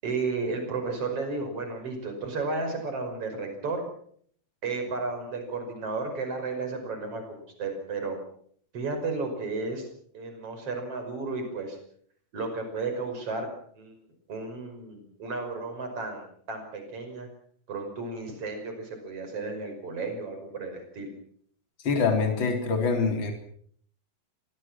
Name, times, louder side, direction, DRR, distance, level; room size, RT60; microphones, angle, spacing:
voice 1, 0.0-3.8 4.6-8.2 8.7-9.9 10.1-11.8 12.3-13.5 13.7-14.0 14.3-17.3 17.7-21.1, right 3 dB, 35° right, 5 dB, 6.4 m, -33 dB
voice 2, 21.8-23.3, left 4 dB, 30° left, 4 dB, 4.1 m, -25 dB
25.5 x 20.5 x 6.1 m, 0.62 s
omnidirectional pair, 4.4 m